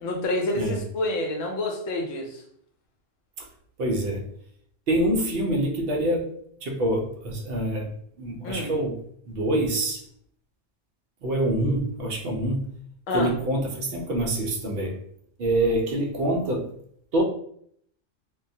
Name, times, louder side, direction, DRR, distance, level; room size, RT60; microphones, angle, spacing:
voice 1, 0.0-2.4 8.4-8.7 13.1-13.3, left 1 dB, 85° left, 2 dB, 1.0 m, -28 dB
voice 2, 3.8-4.2 4.9-6.3 6.6-7.9 8.2-9.0 9.3-10.0 11.2-12.6 13.1-15.0 15.4-16.7 17.1-17.2, right 1 dB, 60° right, 1 dB, 0.7 m, -25 dB
2.2 x 2.1 x 2.6 m, 0.66 s
omnidirectional pair, 1.3 m